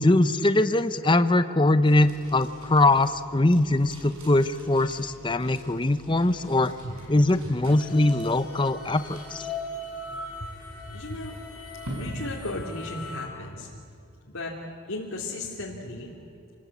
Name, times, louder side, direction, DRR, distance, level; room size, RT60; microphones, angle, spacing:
voice 1, 0.0-6.7 7.1-9.5, left 2 dB, 20° left, 11 dB, 0.7 m, -22 dB
sound 1, 1.8-13.2, right 1 dB, 70° right, 6.7 m, -46 dB
voice 2, 6.8-7.2 7.4-7.5 10.9-11.3 11.9-13.7 14.3-14.5 14.9-16.1, left 2 dB, 70° left, -4 dB, 2.8 m, -35 dB
sound 2, 7.6-13.3, left 2 dB, 90° left, 4.7 m, -39 dB
28.0 x 20.0 x 8.5 m, 2.7 s
head